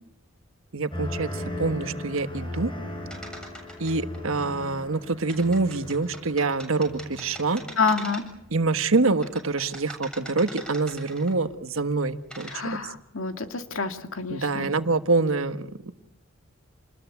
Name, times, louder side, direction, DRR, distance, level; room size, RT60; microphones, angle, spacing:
voice 1, 0.7-2.7 3.8-7.6 8.5-12.5 12.8-12.9 14.3-15.9, right 3 dB, 85° right, 10 dB, 1.4 m, -26 dB
sound 1, 0.9-8.0 8.4-8.9, left 1 dB, 25° left, 6.7 m, -37 dB
sound 2, 3.1-4.2 5.3-8.5 8.9-11.5 12.1-12.6, right 1 dB, 5° left, 7.5 m, -42 dB
voice 2, 7.8-8.2 12.5-14.7, left 4 dB, 80° left, 7 dB, 2.3 m, -28 dB
28.5 x 20.5 x 8.2 m, 0.83 s
head